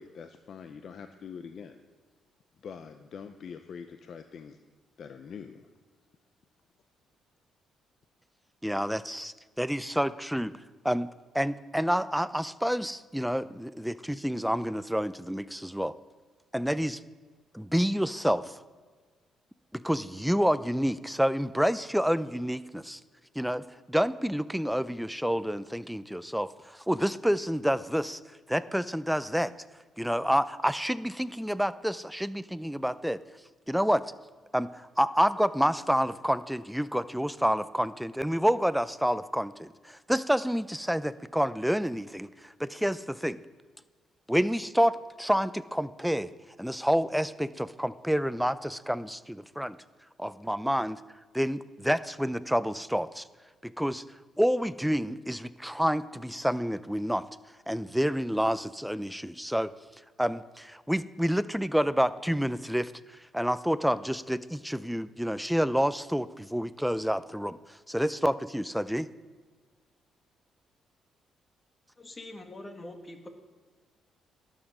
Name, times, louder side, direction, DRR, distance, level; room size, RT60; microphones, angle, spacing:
voice 1, 0.0-1.8 2.6-4.6 5.0-5.7, left 6 dB, 60° left, 9 dB, 0.6 m, -44 dB
voice 2, 8.6-10.5 10.8-11.1 11.3-15.9 16.5-17.0 17.5-18.6 19.7-23.0 23.4-28.2 28.5-29.5 30.0-33.2 33.7-34.0 34.5-43.4 44.3-46.3 46.6-49.8 50.2-51.0 51.3-53.2 53.6-54.0 54.4-57.2 57.7-59.7 60.2-69.1, equal, ahead, 15 dB, 0.4 m, -28 dB
voice 3, 72.0-73.3, left 1 dB, 25° left, 6 dB, 1.6 m, -44 dB
11.5 x 7.4 x 6.2 m, 1.5 s
cardioid pair, 90°, 0 cm